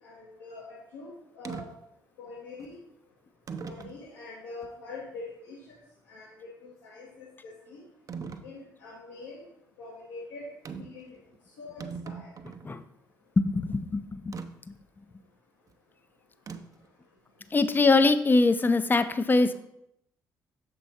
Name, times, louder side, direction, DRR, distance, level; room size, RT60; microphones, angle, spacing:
voice 1, 0.0-1.7 2.2-2.8 3.6-5.8 6.1-7.8 8.4-9.4 9.8-10.4 10.8-11.1 11.6-12.3, left 3 dB, 75° left, -6 dB, 1.3 m, -44 dB
sound 1, 1.4-1.7 2.6-2.7 3.5-4.0 4.6-4.7 8.1-8.5 10.6-11.0 11.3-11.4 11.6-12.7 14.3-14.5 16.5-16.9, right 5 dB, 35° right, 0.6 m, -39 dB
voice 2, 13.4-14.3 17.5-19.5, left 3 dB, 20° left, 11 dB, 0.5 m, -23 dB
7.0 x 4.5 x 4.2 m, 0.78 s
figure-of-eight pair, 40°, 10 cm